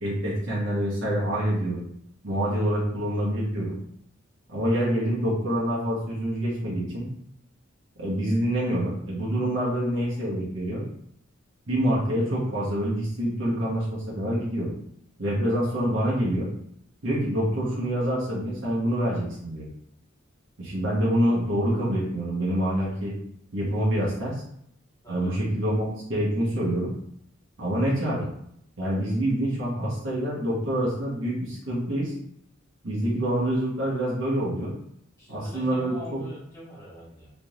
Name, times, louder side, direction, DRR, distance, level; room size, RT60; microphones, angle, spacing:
voice 1, 0.0-1.8 2.2-3.8 4.5-7.1 8.0-10.8 11.7-14.7 15.2-16.5 17.0-19.6 20.6-23.1 23.5-24.4 25.1-26.9 27.6-28.3 28.8-32.1 32.8-34.7 35.3-36.2, right 1 dB, 65° right, -6 dB, 1.0 m, -26 dB
voice 2, 25.0-25.3 35.2-37.3, left 1 dB, 15° left, -9 dB, 1.3 m, -43 dB
3.6 x 3.0 x 2.4 m, 0.71 s
head